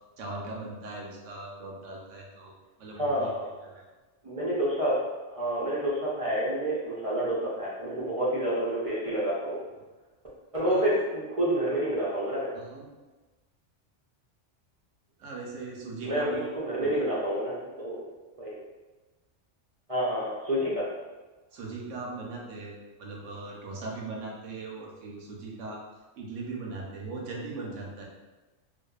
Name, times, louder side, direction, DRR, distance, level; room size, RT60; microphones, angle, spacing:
voice 1, 0.2-2.5 2.8-3.3 3.6-3.8 10.7-10.9 12.5-12.9 15.2-16.5 16.8-17.0 21.5-25.8 26.2-28.0, right 3 dB, 85° right, -2 dB, 1.0 m, -39 dB
voice 2, 3.0-3.5 4.2-5.0 5.3-9.6 10.5-12.5 16.0-18.0 18.4-18.5 19.9-20.8, right 1 dB, 50° right, -7 dB, 0.4 m, -28 dB
2.5 x 2.3 x 2.3 m, 1.2 s
omnidirectional pair, 1.2 m